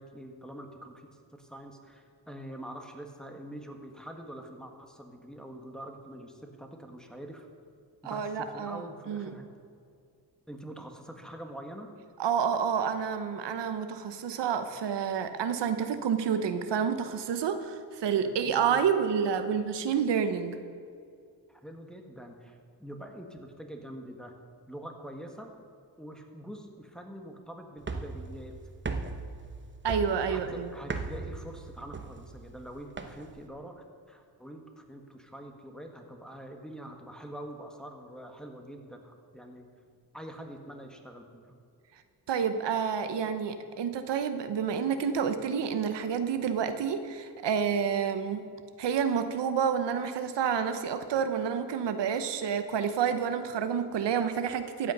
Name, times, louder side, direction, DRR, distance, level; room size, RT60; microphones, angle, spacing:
voice 1, 0.0-7.5 8.0-9.5 10.5-11.9 18.2-19.0 19.3-19.5 21.5-24.3 24.7-25.5 26.0-28.5 30.3-39.7 40.1-41.6, right 1 dB, ahead, 2 dB, 1.5 m, -45 dB
voice 2, 8.0-9.3 12.2-20.6 29.8-30.7 42.3-48.4 48.8-54.9, right 7 dB, 90° right, 9 dB, 0.9 m, -29 dB
sound 1, 27.8-33.5, right 4 dB, 30° right, 0.9 m, -38 dB
14.0 x 8.6 x 5.4 m, 2.3 s
cardioid pair, 85°, 41 cm